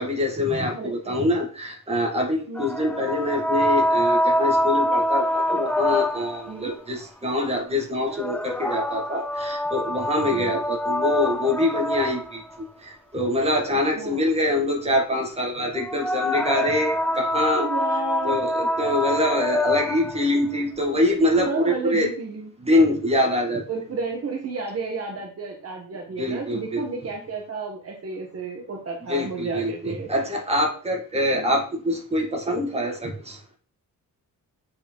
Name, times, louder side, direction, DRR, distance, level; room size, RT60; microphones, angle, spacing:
voice 1, 0.0-17.7 18.2-22.1 22.6-23.6 26.2-26.9 29.1-33.4, left 1 dB, 15° right, 1 dB, 2.0 m, -24 dB
voice 2, 0.7-1.3 2.5-2.7 6.5-6.8 10.2-10.6 13.7-14.2 17.5-18.4 19.2-19.3 21.3-22.5 23.7-30.1 31.3-31.5, right 3 dB, 45° right, 1 dB, 1.5 m, -32 dB
sound 1, 2.6-6.5 8.0-12.6 15.7-20.2, left 1 dB, 5° left, 0.3 m, -25 dB
8.1 x 5.2 x 4.7 m, 0.39 s
wide cardioid pair, 160°, 35 cm